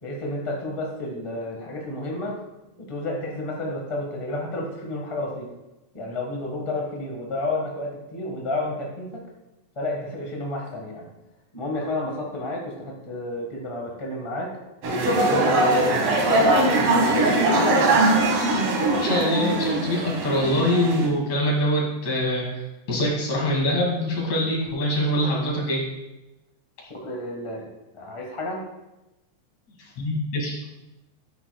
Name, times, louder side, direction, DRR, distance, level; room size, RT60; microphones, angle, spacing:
voice 1, 0.0-2.4 2.8-5.5 5.9-9.2 9.7-11.1 11.5-14.6 15.1-17.5 26.9-27.7 27.9-28.6, left 1 dB, 25° left, -1 dB, 0.6 m, -31 dB
sound 1, 14.8-21.1, right 2 dB, 60° right, 2.3 m, -21 dB
voice 2, 19.0-25.8 30.0-30.6, equal, 65° left, -3 dB, 3.6 m, -24 dB
13.5 x 8.8 x 2.3 m, 1.0 s
omnidirectional pair, 3.5 m